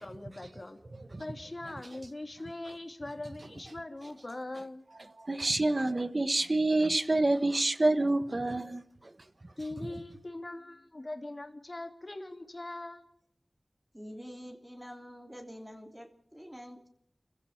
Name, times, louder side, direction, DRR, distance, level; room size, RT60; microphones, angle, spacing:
voice 1, 0.0-0.8 1.2-4.9 9.6-13.0, left 2 dB, 40° left, 2.8 m, -41 dB
voice 2, 5.2-8.8, right 2 dB, 45° right, 1.3 m, -27 dB
voice 3, 13.9-16.9, equal, 10° right, 3.0 m, -46 dB
26.5 x 15.5 x 7.2 m
wide cardioid pair, 55°, 0 cm